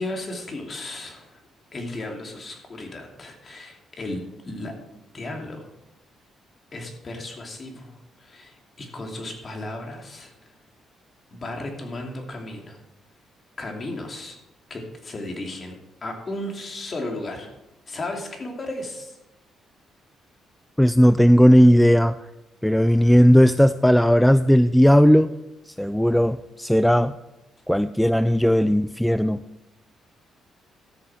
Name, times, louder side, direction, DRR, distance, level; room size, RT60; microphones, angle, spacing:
voice 1, 0.0-1.4 1.7-4.7 5.1-5.7 6.7-10.3 11.3-12.8 13.6-14.4 14.7-17.5 17.9-19.2, left 2 dB, 35° left, 2 dB, 2.7 m, -35 dB
voice 2, 20.8-22.2 22.6-25.3 25.7-27.1 27.7-29.4, equal, 5° left, 13 dB, 0.3 m, -16 dB
13.5 x 6.7 x 6.1 m, 0.91 s
cardioid pair, 90°, 0 cm